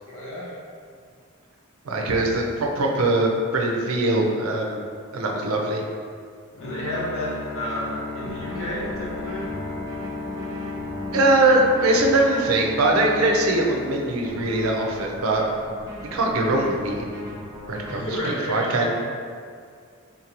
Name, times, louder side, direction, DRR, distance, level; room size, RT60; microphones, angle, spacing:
voice 1, 0.1-0.6 2.0-2.3 6.6-9.4 17.9-18.9, equal, 90° left, -7 dB, 1.2 m, -31 dB
voice 2, 1.9-4.8 5.1-5.8 11.1-15.5 16.1-17.2 17.7-18.9, right 2 dB, 80° right, 0 dB, 0.5 m, -22 dB
Bowed string instrument, 6.6-14.8, left 3 dB, 55° left, 0.4 m, -34 dB
sound 1, 8.2-12.2 14.2-18.2, equal, 15° right, 0.6 m, -38 dB
3.8 x 2.6 x 2.9 m, 2.1 s
head